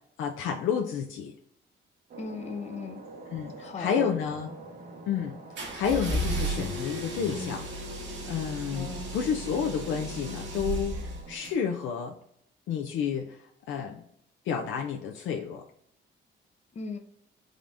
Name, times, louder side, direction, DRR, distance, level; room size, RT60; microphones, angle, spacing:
voice 1, 0.2-1.3 3.3-4.5 5.1-7.6 8.2-11.0 11.3-12.2 12.7-14.0 14.5-15.6, left 7 dB, 80° left, 2 dB, 0.5 m, -30 dB
sound 1, 2.1-11.5, right 3 dB, 50° right, 0.8 m, -47 dB
voice 2, 2.2-3.0 3.6-4.1 8.7-9.1 16.7-17.0, left 4 dB, 35° left, 6 dB, 0.6 m, -37 dB
sound 2, 5.6-11.5, right 1 dB, 70° right, 1.2 m, -34 dB
3.7 x 3.4 x 2.6 m, 0.70 s
cardioid pair, 90°, 20 cm